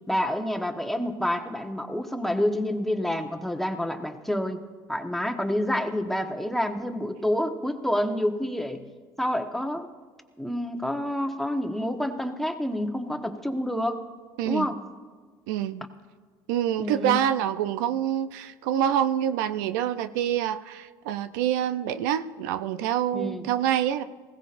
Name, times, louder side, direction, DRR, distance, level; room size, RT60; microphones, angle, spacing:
voice 1, 0.1-4.6 4.9-8.9 9.2-9.9 10.4-14.0 14.4-14.8 16.8-17.2 23.1-23.4, left 1 dB, ahead, 5 dB, 1.2 m, -28 dB
voice 2, 14.4-14.7 15.5-15.9 16.5-24.0, right 10 dB, 85° right, 12 dB, 0.5 m, -26 dB
20.0 x 16.5 x 2.6 m, 1.5 s
supercardioid pair, 85°, 10 cm